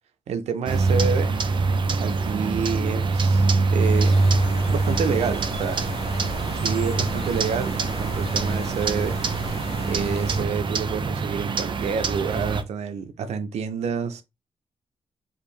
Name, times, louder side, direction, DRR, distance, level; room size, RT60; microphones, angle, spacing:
voice 1, 0.3-1.4 2.0-4.3 4.7-6.0 6.5-9.2 9.9-14.2, right 6 dB, 90° right, 0.7 m, -29 dB
sound 1, 0.7-12.6, right 3 dB, 50° right, 0.6 m, -24 dB
sound 2, 3.8-10.4, left 5 dB, 70° left, 0.8 m, -37 dB
4.9 x 2.7 x 3.2 m
cardioid pair, 90°, 11 cm